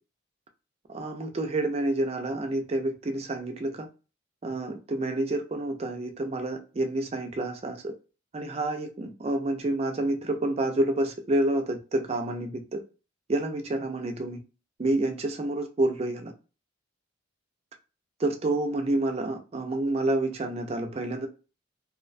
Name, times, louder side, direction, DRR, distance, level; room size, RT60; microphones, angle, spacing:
voice 1, 0.9-3.9 4.4-7.9 8.3-12.8 13.3-14.4 14.8-16.3 18.2-21.3, right 2 dB, 30° right, 0.3 m, -28 dB
2.4 x 2.1 x 2.4 m
head